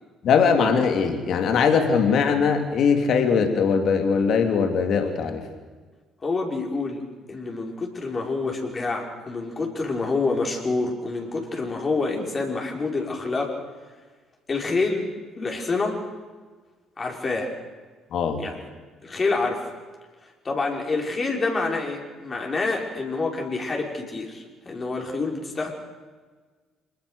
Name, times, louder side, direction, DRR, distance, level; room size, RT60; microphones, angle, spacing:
voice 1, 0.2-5.4 18.1-18.4, left 6 dB, 60° left, 5 dB, 3.2 m, -21 dB
voice 2, 6.2-7.0 7.3-13.6 14.5-16.0 17.0-17.5 18.4-18.7 19.0-19.6 20.2-25.7, left 3 dB, 35° left, 1 dB, 5.6 m, -27 dB
26.5 x 20.5 x 6.7 m, 1.4 s
hypercardioid pair, 50°, 0 cm